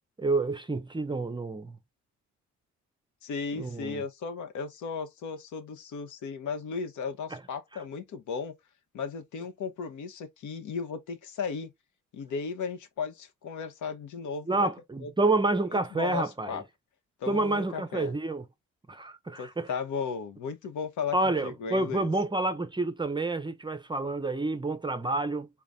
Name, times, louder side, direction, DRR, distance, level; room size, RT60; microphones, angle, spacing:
voice 1, 0.2-1.8 3.6-4.0 7.3-7.4 14.5-16.6 17.3-18.4 18.9-19.7 21.1-25.5, right 2 dB, 15° right, 0.5 m, -29 dB
voice 2, 3.2-8.5 8.9-11.7 12.1-14.7 15.0-15.1 15.7-16.6 17.2-18.1 19.4-21.2 21.4-22.1, left 5 dB, 75° left, 1.0 m, -35 dB
4.0 x 2.3 x 3.5 m
cardioid pair, 90°, 30 cm